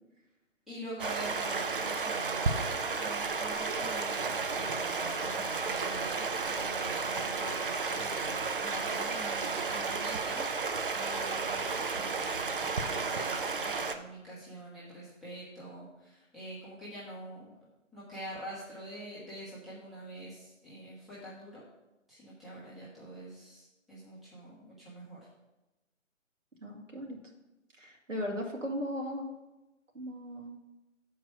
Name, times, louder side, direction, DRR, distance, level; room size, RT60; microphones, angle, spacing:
voice 1, 0.7-17.5 17.9-21.6 22.1-25.2, right 1 dB, ahead, -10 dB, 1.1 m, -45 dB
Stream, 1.0-13.9, right 4 dB, 45° right, 0.6 m, -33 dB
voice 2, 26.6-27.2 27.8-29.3 29.9-30.6, equal, 70° right, 1 dB, 2.2 m, -37 dB
7.3 x 4.7 x 6.5 m, 1.0 s
figure-of-eight pair, 140°, 39 cm